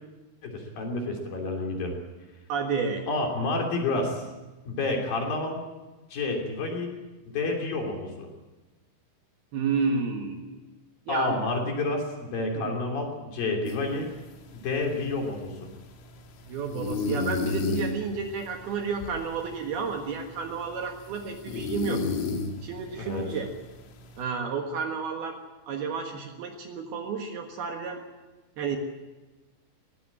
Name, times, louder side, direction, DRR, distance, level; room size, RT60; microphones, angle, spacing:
voice 1, 0.4-1.9 3.1-4.3 4.7-5.6 6.1-6.9 7.3-8.3 11.1-14.1 14.5-15.7 23.0-23.2, left 2 dB, 50° left, 2 dB, 4.5 m, -29 dB
voice 2, 2.5-3.1 9.5-10.6 11.1-11.4 12.5-12.8 16.4-22.0 22.6-23.5 24.2-25.4 25.7-28.0 28.6-28.8, right 5 dB, 65° right, 3 dB, 3.1 m, -31 dB
sound 1, 13.7-24.2, left 4 dB, 85° left, 4.7 m, -35 dB
20.0 x 17.0 x 8.8 m, 1.2 s
omnidirectional pair, 5.5 m